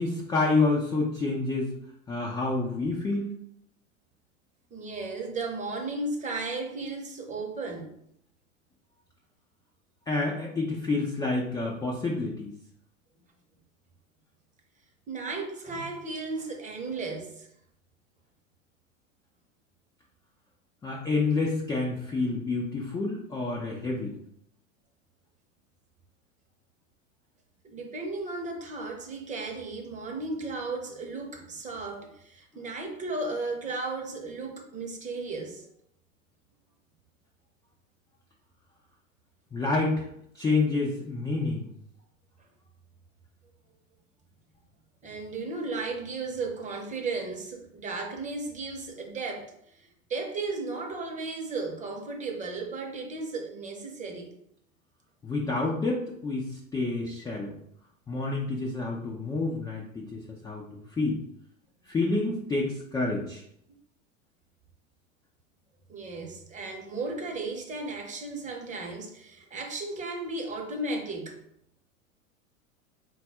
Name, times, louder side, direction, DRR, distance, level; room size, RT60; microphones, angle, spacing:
voice 1, 0.0-1.7 2.1-3.3 10.1-12.5 20.8-24.1 39.5-40.1 40.3-41.6 55.2-57.5 58.1-60.6 61.0-61.2 61.9-63.4, left 3 dB, 10° left, -3 dB, 0.4 m, -28 dB
voice 2, 4.7-8.0 15.1-17.5 27.6-35.7 45.0-54.3 65.9-71.4, right 3 dB, 20° right, 2 dB, 0.8 m, -35 dB
4.0 x 2.4 x 4.1 m, 0.73 s
figure-of-eight pair, 90°, 41 cm